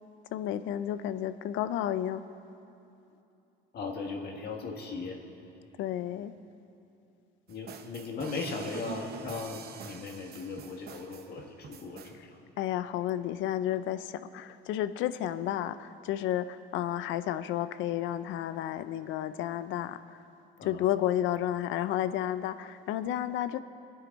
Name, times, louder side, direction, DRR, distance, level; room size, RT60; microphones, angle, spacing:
voice 1, 0.3-2.2 5.8-6.3 12.2-12.3 12.6-20.0 20.6-23.6, left 12 dB, 70° left, 13 dB, 0.6 m, -31 dB
voice 2, 3.7-5.2 7.5-12.3 20.6-20.8, left 4 dB, 55° left, 1 dB, 2.0 m, -38 dB
sound 1, 7.5-12.2, right 7 dB, 50° right, 1.0 m, -45 dB
24.0 x 9.6 x 4.0 m, 2.7 s
cardioid pair, 120°, 20 cm